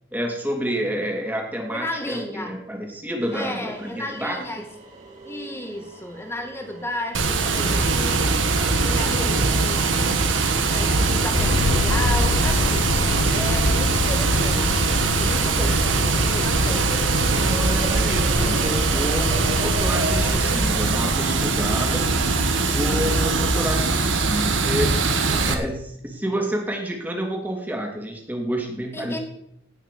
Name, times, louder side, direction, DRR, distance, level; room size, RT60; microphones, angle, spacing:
voice 1, 0.1-4.4 9.0-9.5 15.5-15.7 17.4-22.1 22.5-24.9 25.3-29.2, equal, 10° right, 0 dB, 3.0 m, -29 dB
voice 2, 1.7-2.6 3.3-4.7 5.3-10.2 10.7-17.1 28.9-29.2, left 1 dB, 15° left, 4 dB, 2.2 m, -33 dB
sound 1, 3.2-20.2, right 1 dB, 40° right, 4.3 m, -39 dB
Water, 7.1-25.5, right 3 dB, 85° right, 1.6 m, -21 dB
sound 2, 11.4-22.3, left 4 dB, 60° left, 0.5 m, -29 dB
17.5 x 6.5 x 7.0 m, 0.75 s
head